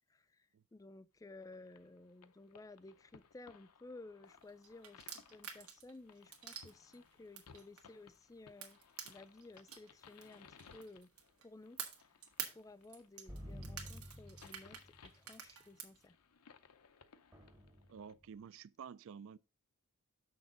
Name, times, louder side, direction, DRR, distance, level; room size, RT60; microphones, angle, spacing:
voice 1, 0.1-8.8 9.0-11.1 11.4-11.8 12.5-16.2, left 2 dB, 15° left, 0.3 m, -56 dB
sound 1, 1.4-18.1, left 6 dB, 85° left, 0.6 m, -63 dB
sound 2, 4.4-8.2 8.6-11.4 11.8-16.0, right 8 dB, 85° right, 1.5 m, -48 dB
sound 3, 13.3-15.1 17.3-18.3, equal, 15° right, 0.9 m, -50 dB
voice 2, 17.9-19.4, right 7 dB, 60° right, 0.3 m, -51 dB
6.8 x 6.3 x 3.8 m
head